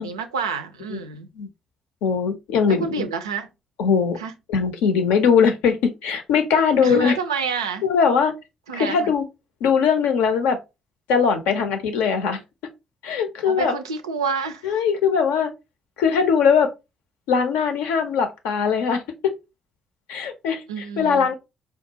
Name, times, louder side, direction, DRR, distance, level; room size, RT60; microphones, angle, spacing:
voice 1, 0.0-1.3 2.7-3.5 4.2-4.3 6.8-7.8 8.7-9.1 13.4-14.8 20.7-21.3, right 5 dB, 85° right, 0.3 m, -28 dB
voice 2, 2.0-3.1 3.8-4.2 4.5-7.2 7.8-8.3 8.7-9.2 9.6-10.6 11.1-12.4 13.0-13.7 14.6-15.5 16.0-16.7 17.3-19.3 20.1-20.6 21.0-21.3, left 6 dB, 70° left, 0.6 m, -20 dB
4.4 x 2.3 x 2.8 m
hypercardioid pair, 45°, 2 cm